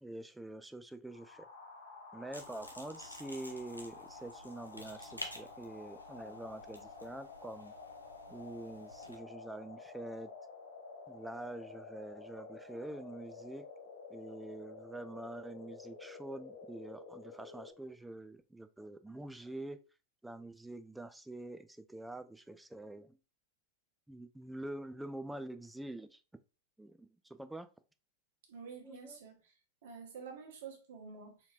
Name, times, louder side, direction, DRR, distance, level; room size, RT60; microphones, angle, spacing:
voice 1, 0.0-1.5 2.1-7.7 8.3-10.3 11.1-13.6 14.1-19.8 20.2-23.2 24.1-26.2 26.8-27.7 28.8-29.2, right 1 dB, 5° right, 0.3 m, -46 dB
sound 1, 1.1-17.7, left 4 dB, 60° left, 1.2 m, -51 dB
sound 2, 2.3-9.2, left 1 dB, 85° left, 0.6 m, -51 dB
voice 2, 28.5-29.4 29.8-31.4, right 5 dB, 55° right, 1.1 m, -48 dB
4.2 x 2.9 x 2.4 m
figure-of-eight pair, 90°, 0 cm